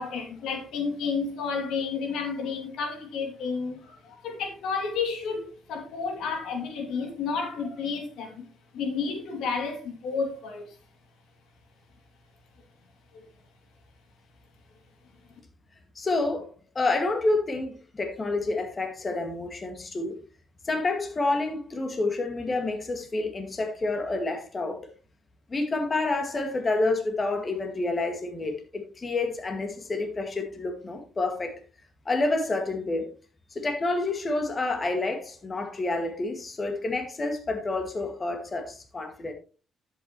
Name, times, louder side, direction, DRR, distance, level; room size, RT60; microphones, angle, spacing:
voice 1, 0.0-8.4 8.7-10.6 13.1-13.2, left 5 dB, 85° left, 2.5 m, -31 dB
voice 2, 16.0-16.5 16.8-20.2 20.6-24.8 25.5-31.6 32.1-33.1 33.5-39.3, left 2 dB, 30° left, 2.0 m, -28 dB
10.5 x 8.4 x 3.1 m
cardioid pair, 90°, 0 cm